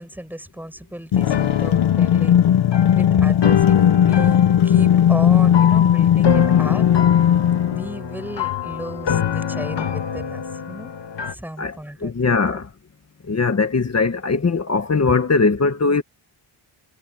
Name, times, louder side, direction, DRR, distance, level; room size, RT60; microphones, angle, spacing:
voice 1, 0.0-2.4 2.9-6.9 7.7-10.9 11.3-12.6, right 1 dB, 5° right, 7.4 m, -34 dB
sound 1, 1.1-7.9, left 10 dB, 75° left, 1.3 m, -16 dB
sound 2, 1.2-11.3, left 8 dB, 60° left, 2.3 m, -26 dB
voice 2, 12.0-12.7 13.3-16.0, left 4 dB, 30° left, 1.8 m, -20 dB
wide cardioid pair, 135°, 48 cm